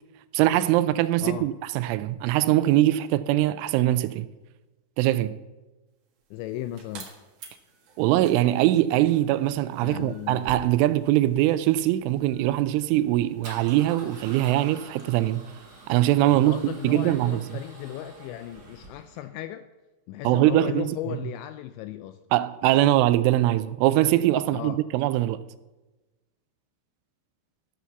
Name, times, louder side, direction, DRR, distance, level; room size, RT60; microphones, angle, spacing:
voice 1, 0.3-4.3 5.0-5.4 8.0-15.5 15.9-17.4 20.2-21.0 22.3-25.4, right 14 dB, 85° right, 3.0 m, -22 dB
sound 1, 6.0-17.7, right 5 dB, 70° right, 1.6 m, -54 dB
voice 2, 6.3-7.1 9.8-10.5 16.3-19.7 20.1-22.2 24.5-24.8, left 13 dB, 85° left, 2.6 m, -36 dB
Male speech man speaking / Car / Engine starting, 8.3-19.2, right 2 dB, 40° right, 4.9 m, -48 dB
15.5 x 5.8 x 6.9 m
omnidirectional pair, 5.6 m